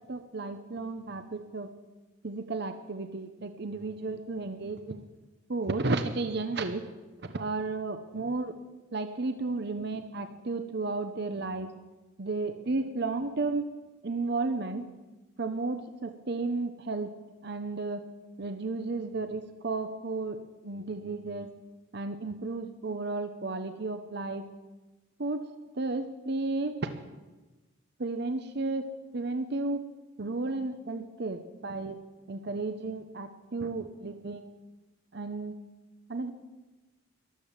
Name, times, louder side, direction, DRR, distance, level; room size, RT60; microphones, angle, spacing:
voice 1, 0.1-1.7 2.2-5.0 5.5-6.8 7.2-8.5 8.9-11.7 12.2-13.7 14.0-14.8 15.4-17.1 17.4-18.0 18.4-20.4 20.6-21.5 21.9-24.4 25.2-25.4 25.8-26.7 28.0-28.9 29.1-29.8 30.2-31.9 32.3-34.5 35.1-35.5 36.1-36.3, right 3 dB, 50° right, 8 dB, 0.8 m, -33 dB
13.5 x 12.0 x 7.3 m, 1.2 s
head